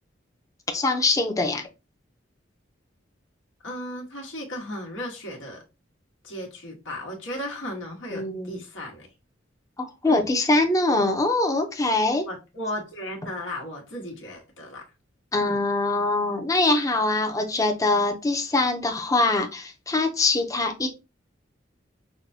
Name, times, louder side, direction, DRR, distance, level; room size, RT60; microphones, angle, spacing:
voice 1, 0.7-1.6 8.1-8.6 9.8-12.3 15.3-20.9, left 2 dB, 20° left, 0.6 m, -23 dB
voice 2, 3.6-5.6 6.2-9.1 10.0-10.2 12.2-14.8 15.4-15.6, left 1 dB, 80° left, 1.4 m, -35 dB
5.7 x 2.2 x 2.7 m
head